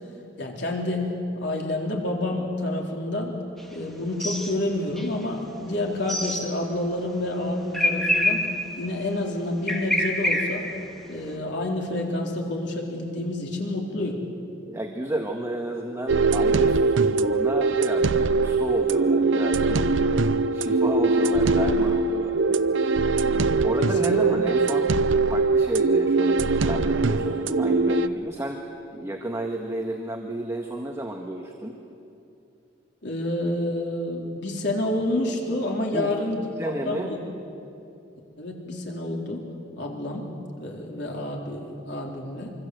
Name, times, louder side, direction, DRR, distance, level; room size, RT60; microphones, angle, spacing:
voice 1, 0.4-1.1 1.4-3.3 3.7-8.4 8.8-10.6 11.1-14.2 23.8-24.2 33.0-37.2 38.4-39.4 39.8-40.3 40.6-42.5, left 1 dB, 65° left, 0 dB, 4.0 m, -28 dB
sound 1, 3.6-3.7 4.1-4.5 5.0-5.1 6.1-6.5 7.7-8.8 9.7-10.8, left 1 dB, ahead, 2.5 m, -25 dB
voice 2, 14.7-19.8 20.5-22.8 23.6-24.9 25.3-28.6 28.9-31.8 35.9-36.1 36.6-37.1, right 1 dB, 15° right, 1 dB, 1.6 m, -31 dB
sound 2, 16.1-28.1, right 3 dB, 90° right, 0.6 m, -22 dB
25.5 x 25.0 x 7.9 m, 2.7 s
head